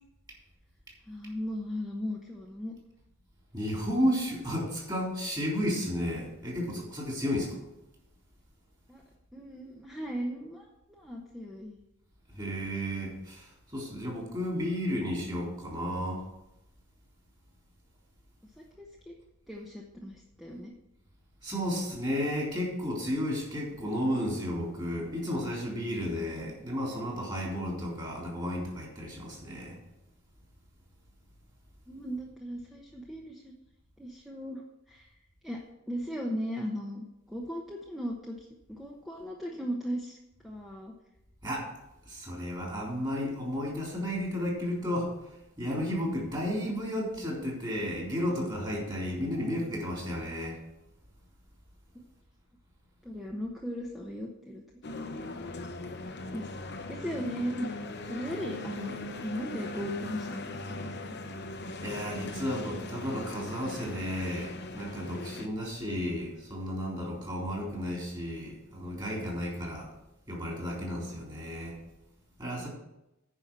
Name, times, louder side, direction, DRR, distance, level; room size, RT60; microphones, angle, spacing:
voice 1, 1.1-2.7 8.9-9.0 9.3-11.8 18.8-19.1 19.5-20.7 31.9-33.5 34.0-35.1 35.4-35.6 35.9-40.2 40.4-40.9 51.9-52.0 53.0-54.6 54.9-55.3 56.3-56.5 56.9-57.7 58.1-58.9 59.2-61.1, equal, ahead, -2 dB, 1.0 m, -37 dB
voice 2, 3.5-7.6 12.3-16.2 21.4-29.8 41.4-41.7 42.1-45.1 45.6-50.6 61.8-69.9 70.3-71.8 72.4-72.7, equal, 20° right, -2 dB, 3.5 m, -33 dB
sound 1, 54.8-65.5, left 2 dB, 50° left, 0.9 m, -40 dB
9.8 x 5.6 x 7.4 m, 0.90 s
head